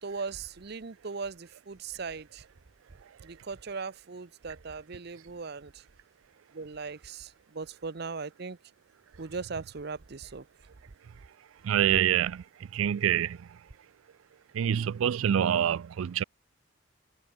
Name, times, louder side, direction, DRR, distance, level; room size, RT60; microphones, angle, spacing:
voice 1, 0.0-2.4 3.2-5.8 6.5-8.6 9.2-10.4, right 4 dB, 50° right, 0.7 m, -39 dB
voice 2, 11.6-12.4 12.7-13.4 14.5-16.2, right 9 dB, 80° right, 0.4 m, -26 dB
head